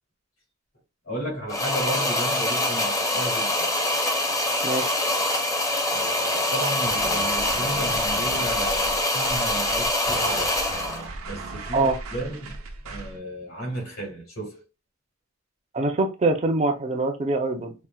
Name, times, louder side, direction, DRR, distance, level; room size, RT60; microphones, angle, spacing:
voice 1, 1.1-3.7 5.9-10.6 11.2-12.6 12.8-14.6, right 1 dB, 80° left, 1.9 m, -34 dB
sound 1, 1.5-11.1, left 1 dB, 15° left, 0.5 m, -24 dB
voice 2, 4.6-5.0 11.7-12.0 15.7-17.7, right 2 dB, 30° right, 0.5 m, -24 dB
sound 2, 6.8-13.2, right 3 dB, 90° right, 0.6 m, -37 dB
4.3 x 2.0 x 2.2 m
head